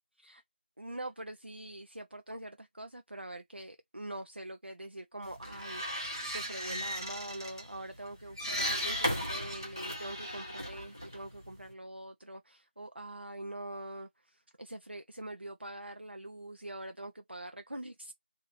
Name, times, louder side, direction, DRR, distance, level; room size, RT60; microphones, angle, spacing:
voice 1, 0.8-18.1, right 1 dB, 75° right, 0.6 m, -44 dB
sound 1, 5.2-11.7, equal, 20° right, 0.9 m, -37 dB
3.1 x 2.7 x 2.6 m
figure-of-eight pair, 175°, 6 cm